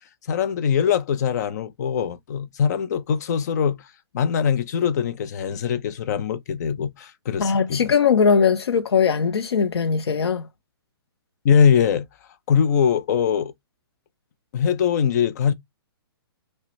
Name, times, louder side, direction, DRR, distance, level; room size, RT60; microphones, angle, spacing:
voice 1, 0.3-7.9 11.4-12.1 12.5-13.5 14.5-15.5, left 7 dB, 45° left, 0.6 m, -22 dB
voice 2, 7.4-10.5, left 6 dB, 90° left, 0.7 m, -20 dB
5.8 x 2.2 x 3.0 m
hypercardioid pair, 155°, 13 cm